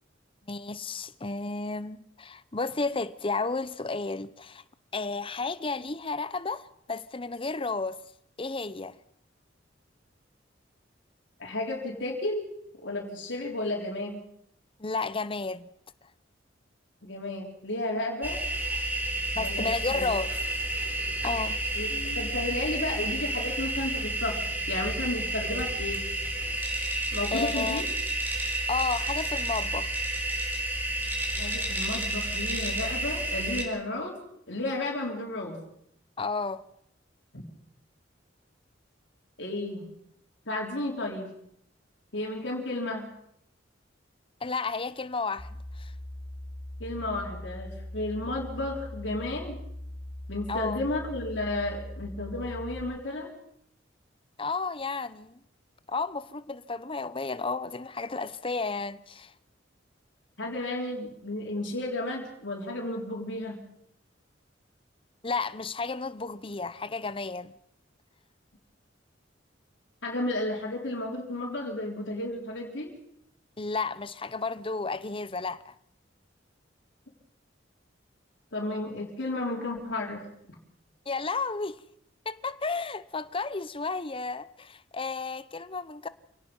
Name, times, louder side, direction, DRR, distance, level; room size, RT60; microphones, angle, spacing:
voice 1, 0.5-4.6 4.9-8.0 8.4-9.0 14.8-15.7 19.4-20.3 21.2-21.6 27.3-27.8 28.7-30.1 36.2-36.6 44.4-45.9 50.5-50.8 54.4-55.4 55.9-59.3 65.2-67.5 73.6-75.7 81.1-81.8 82.2-86.1, left 4 dB, 30° left, 0.8 m, -32 dB
voice 2, 11.4-12.5 12.8-14.2 17.0-18.4 19.3-20.1 21.8-24.4 24.7-26.0 27.1-27.9 31.4-34.2 34.5-35.6 37.3-37.4 39.4-39.9 40.5-41.3 42.1-43.1 46.8-49.6 50.3-53.3 60.4-63.6 70.0-72.9 78.5-80.2, left 2 dB, 70° left, 4.0 m, -33 dB
sound 1, 18.2-33.6, right 2 dB, 10° right, 4.3 m, -31 dB
sound 2, 45.4-52.8, left 1 dB, 10° left, 2.4 m, -40 dB
27.0 x 18.0 x 5.5 m
head